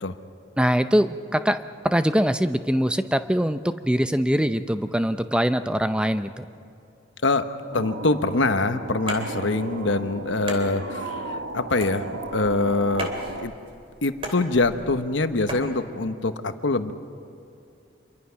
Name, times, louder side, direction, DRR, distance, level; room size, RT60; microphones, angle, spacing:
voice 1, 0.6-1.6 1.8-6.5, equal, 5° right, 10 dB, 0.6 m, -23 dB
voice 2, 7.7-11.2 11.5-12.0 12.3-13.5 14.0-16.9, left 3 dB, 85° left, 9 dB, 1.1 m, -24 dB
sound 1, 7.7-13.5, right 2 dB, 75° right, 1.0 m, -35 dB
sound 2, 8.9-15.7, right 1 dB, 30° right, 2.8 m, -38 dB
26.5 x 23.0 x 5.8 m, 2.5 s
head